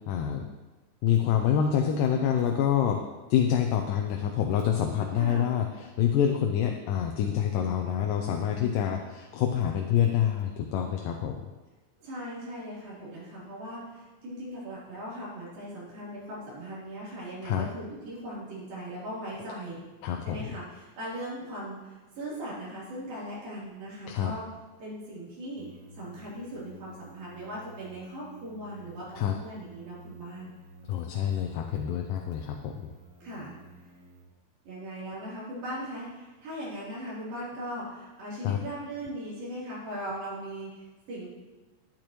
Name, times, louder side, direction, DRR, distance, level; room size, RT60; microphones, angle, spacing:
voice 1, 0.1-0.4 1.0-3.0 3.3-11.5 17.5-17.7 20.0-20.5 24.0-24.3 29.2-29.4 30.9-32.7 38.4-38.6, left 9 dB, 80° left, 3 dB, 2.2 m, -27 dB
voice 2, 5.2-5.6 12.0-19.8 20.2-24.4 24.8-25.6 25.9-30.5 33.2-33.5 34.6-41.3, equal, 90° right, -8 dB, 5.2 m, -39 dB
sound 1, 25.6-34.2, right 2 dB, 55° right, 1.5 m, -52 dB
11.0 x 10.0 x 3.1 m, 1.2 s
omnidirectional pair, 4.0 m